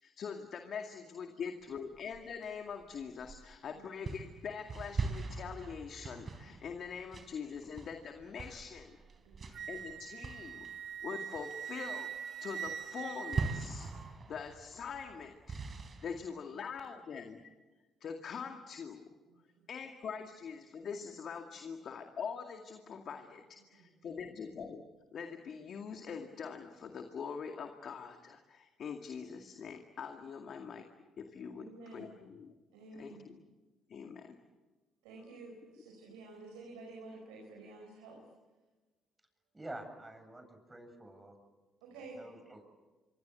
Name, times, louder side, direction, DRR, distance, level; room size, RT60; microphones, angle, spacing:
voice 1, 0.0-9.0 9.4-10.7 11.0-12.1 12.4-15.6 16.0-17.4 18.0-19.1 19.7-24.8 25.1-30.9 31.2-32.5 32.9-33.4 33.9-34.4, left 6 dB, 55° left, 5 dB, 2.2 m, -43 dB
sound 1, 1.9-3.6 4.0-11.1 11.3-11.8 12.1-12.4 12.6-16.2, right 4 dB, 40° right, 4.3 m, -42 dB
Wind instrument woodwind instrument, 9.5-14.1, right 8 dB, 60° right, 2.5 m, -43 dB
voice 2, 31.5-32.2 32.7-33.3 35.0-38.2 41.8-42.2, right 3 dB, 80° right, 1 dB, 4.6 m, -50 dB
voice 3, 39.5-41.3 41.9-42.6, right 1 dB, 20° right, 6 dB, 7.6 m, -48 dB
26.0 x 25.0 x 8.2 m, 1.2 s
hypercardioid pair, 50°, 0 cm